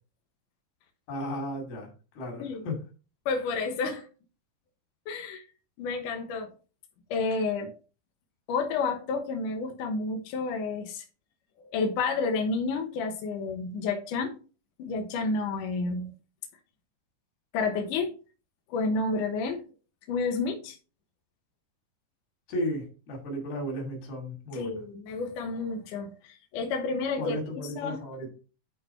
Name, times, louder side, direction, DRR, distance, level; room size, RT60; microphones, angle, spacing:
voice 1, 1.1-1.9 2.2-2.8 22.5-24.8 27.2-28.3, equal, 90° left, 4.6 m, -34 dB
voice 2, 3.3-4.1 5.1-5.4 5.8-6.5 7.1-7.8 8.5-11.0 11.6-14.4 14.8-16.1 17.5-18.1 18.7-19.6 20.1-20.8 24.5-27.4 27.8-28.0, left 4 dB, 70° left, 2.5 m, -30 dB
11.0 x 3.9 x 4.5 m
omnidirectional pair, 4.2 m